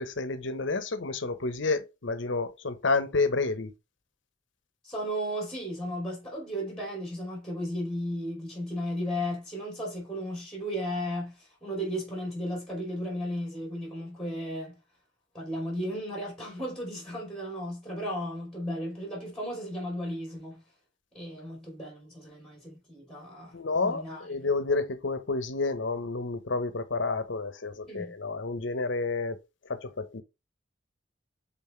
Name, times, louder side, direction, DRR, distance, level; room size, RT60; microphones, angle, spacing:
voice 1, 0.0-3.7 23.5-29.4 29.7-30.2, left 3 dB, 75° left, 0.9 m, -30 dB
voice 2, 4.8-14.8 15.3-20.6 21.1-23.5 23.8-24.5 27.9-28.1, equal, 5° left, 3.0 m, -35 dB
5.7 x 4.1 x 4.4 m
head